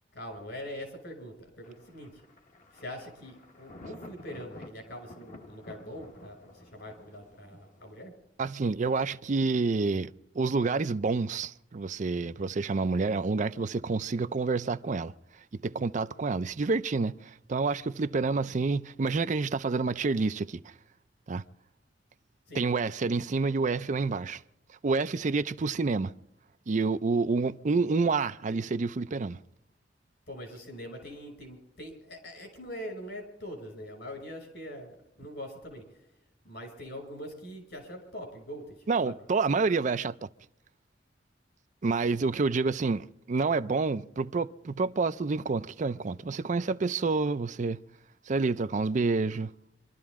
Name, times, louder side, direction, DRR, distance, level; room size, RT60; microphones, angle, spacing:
voice 1, 0.1-2.1 2.7-8.1 22.5-22.6 30.3-35.8 36.4-38.8 39.1-39.2, equal, 65° left, 5.9 m, -43 dB
Thunder, 1.6-8.0, left 1 dB, 45° left, 1.2 m, -51 dB
voice 2, 8.4-15.1 15.5-20.6 21.3-21.4 22.5-24.4 24.8-26.1 26.7-29.4 38.9-40.3 41.8-47.8 48.3-49.5, right 4 dB, 45° right, 0.5 m, -28 dB
26.5 x 12.5 x 3.6 m
head